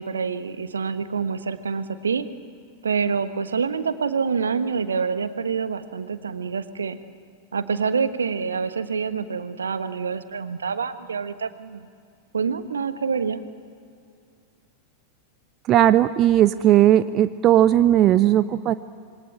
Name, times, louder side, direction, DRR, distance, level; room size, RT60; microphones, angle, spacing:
voice 1, 0.0-2.3 2.8-7.0 7.5-11.9 12.3-13.4, right 5 dB, 70° right, 11 dB, 1.3 m, -26 dB
voice 2, 15.7-18.7, right 12 dB, 35° right, 13 dB, 0.6 m, -17 dB
27.0 x 23.0 x 8.9 m, 2.3 s
figure-of-eight pair, 90°, 0 cm